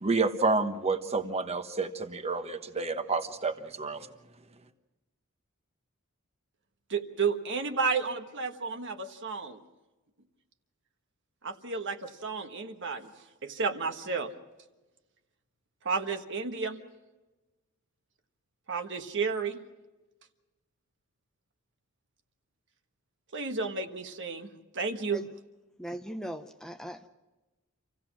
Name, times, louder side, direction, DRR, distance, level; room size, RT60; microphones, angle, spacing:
voice 1, 0.0-4.1, right 3 dB, 30° right, 7 dB, 1.2 m, -29 dB
voice 2, 6.9-9.6 11.4-13.1 13.4-14.3 15.8-16.8 18.7-19.6 23.3-25.2, right 5 dB, 55° right, 6 dB, 1.4 m, -32 dB
voice 3, 25.8-27.1, equal, 5° left, 7 dB, 0.6 m, -39 dB
27.0 x 16.0 x 6.1 m, 1.1 s
head